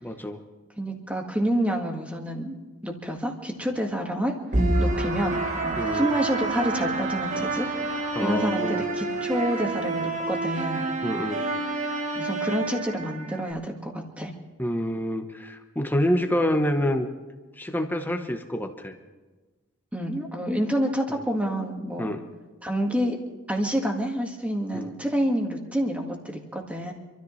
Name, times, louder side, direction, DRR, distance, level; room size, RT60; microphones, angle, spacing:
voice 1, 0.0-0.4 5.8-6.1 8.1-8.8 11.0-11.4 14.6-17.1 17.6-18.9 21.1-21.2 22.0-22.2 24.7-24.9, equal, 10° left, 5 dB, 1.0 m, -27 dB
voice 2, 0.8-2.6 2.8-4.3 4.8-10.9 12.1-14.3 19.9-22.1 22.6-23.2 23.5-26.9, equal, 5° right, 2 dB, 1.8 m, -28 dB
sound 1, 4.5-13.5, right 2 dB, 35° right, 1.3 m, -28 dB
26.5 x 13.5 x 3.2 m, 1.2 s
head